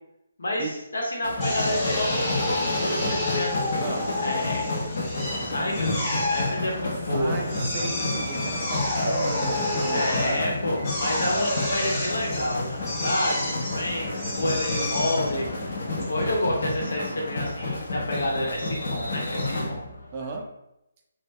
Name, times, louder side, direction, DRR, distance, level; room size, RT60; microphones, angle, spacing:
voice 1, 0.4-3.9 4.2-4.7 5.4-7.5 9.9-15.5 16.0-19.8, left 1 dB, 85° left, -2 dB, 0.9 m, -29 dB
sound 1, 1.2-20.3, left 2 dB, 50° left, 0.6 m, -31 dB
Drill, 1.4-16.7, left 1 dB, 15° left, 0.7 m, -30 dB
voice 2, 7.1-10.6 20.1-20.5, right 4 dB, 25° right, 1 dB, 0.3 m, -34 dB
2.1 x 2.1 x 3.4 m, 0.87 s
hypercardioid pair, 165°, 0 cm